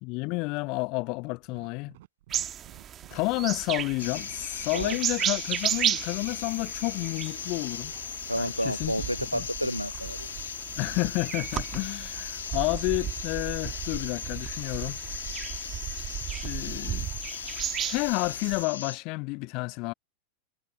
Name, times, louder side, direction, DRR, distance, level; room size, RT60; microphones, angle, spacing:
voice 1, 0.0-2.0 3.1-7.9 8.4-9.0 9.3-9.5 10.8-15.0 16.4-17.1 17.8-19.9, left 27 dB, 40° left, 0.9 m, -30 dB
sound 1, 1.3-12.9, right 17 dB, 55° right, 5.0 m, -55 dB
sound 2, 2.3-18.6, right 10 dB, 25° right, 2.1 m, -35 dB
sound 3, 4.0-19.0, left 8 dB, 65° left, 1.0 m, -38 dB
voice 2, 8.3-10.3, equal, 90° right, 1.0 m, -30 dB
figure-of-eight pair, 90°, 0 cm